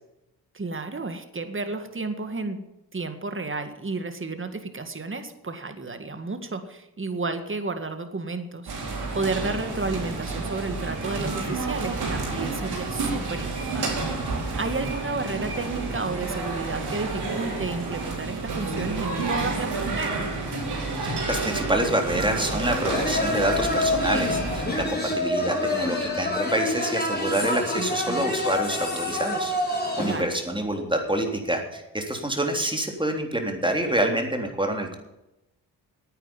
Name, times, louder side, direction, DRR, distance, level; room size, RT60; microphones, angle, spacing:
voice 1, 0.5-2.6 2.9-13.9 14.2-20.3 27.8-28.3 30.0-30.2, right 3 dB, 30° right, 8 dB, 2.0 m, -32 dB
sound 1, 8.7-24.9, right 3 dB, 65° right, 4.3 m, -30 dB
voice 2, 21.0-29.5 30.0-35.0, right 1 dB, 10° right, 2 dB, 3.5 m, -27 dB
sound 2, 22.4-30.2, left 2 dB, 20° left, 4.8 m, -27 dB
9.8 x 9.2 x 9.8 m, 0.93 s
supercardioid pair, 45°, 43 cm